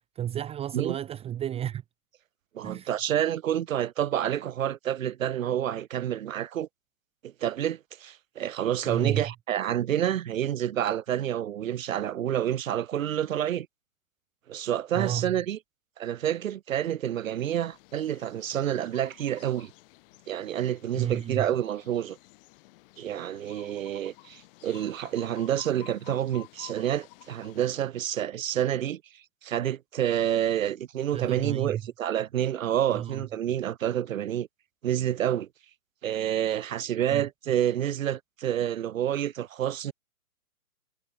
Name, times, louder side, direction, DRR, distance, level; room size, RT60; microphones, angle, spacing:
voice 1, 0.1-1.8 2.6-3.0 8.8-9.2 14.9-15.4 20.9-21.5 31.1-31.8 32.9-33.2 37.1-37.2, right 11 dB, 15° right, 1.2 m, -31 dB
voice 2, 2.5-6.7 7.2-13.7 14.5-15.6 16.0-19.7 20.3-22.2 23.0-29.0 29.4-34.5 34.8-35.5 36.0-39.9, right 10 dB, 65° right, 1.1 m, -28 dB
sound 1, 17.4-27.8, left 21 dB, 40° left, 6.9 m, -53 dB
hypercardioid pair, 135°, 43 cm